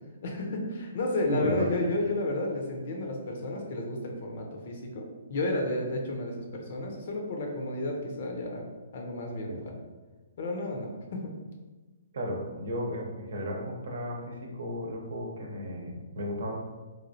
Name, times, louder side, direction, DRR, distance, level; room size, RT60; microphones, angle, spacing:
voice 1, 0.2-8.6 8.9-9.7 10.4-11.3, left 2 dB, 55° left, 1 dB, 0.6 m, -32 dB
voice 2, 1.3-1.7 9.5-9.6 12.1-16.5, equal, 70° right, 0 dB, 0.7 m, -34 dB
3.1 x 2.3 x 2.6 m, 1.2 s
hypercardioid pair, 145°, 0 cm